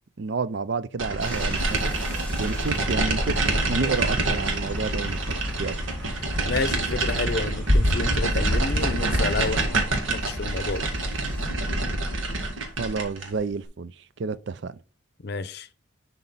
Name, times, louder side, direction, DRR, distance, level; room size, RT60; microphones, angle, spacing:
voice 1, 0.2-1.9 2.4-5.7 12.8-14.8, right 4 dB, 60° right, 0.5 m, -30 dB
sound 1, 1.0-13.3, right 2 dB, 85° right, 1.9 m, -26 dB
sound 2, 1.2-11.5, left 1 dB, 10° left, 2.5 m, -44 dB
sound 3, 3.1-9.3, left 1 dB, 20° right, 2.0 m, -29 dB
voice 2, 6.4-9.8 10.1-10.9 15.2-15.7, left 3 dB, 55° left, 0.6 m, -30 dB
11.0 x 4.1 x 4.1 m
head